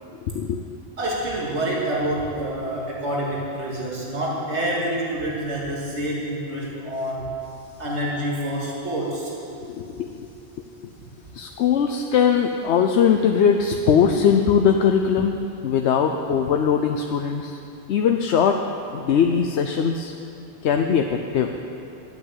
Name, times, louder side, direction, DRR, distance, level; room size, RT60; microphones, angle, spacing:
voice 1, 0.2-0.6 9.6-10.3 10.6-10.9 11.3-15.4 15.6-17.6 17.9-18.6 18.9-20.1 20.6-21.6, left 7 dB, 80° left, 4 dB, 0.9 m, -20 dB
voice 2, 1.0-7.3 7.8-9.3, right 1 dB, 90° right, -5 dB, 2.4 m, -27 dB
12.0 x 8.8 x 8.0 m, 2.7 s
omnidirectional pair, 1.1 m